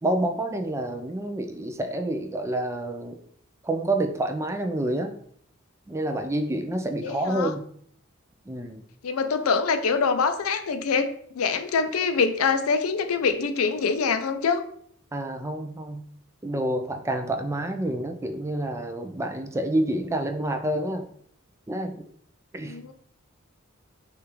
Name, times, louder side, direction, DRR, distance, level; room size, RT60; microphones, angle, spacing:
voice 1, 0.0-3.2 3.6-5.2 5.9-7.7 8.5-8.8 15.1-16.1 16.4-21.0 21.7-22.0 22.5-22.8, right 1 dB, 15° right, 6 dB, 0.4 m, -28 dB
voice 2, 7.0-7.5 9.0-14.6 22.6-22.9, left 5 dB, 90° left, 10 dB, 0.5 m, -25 dB
6.3 x 2.5 x 3.0 m, 0.63 s
head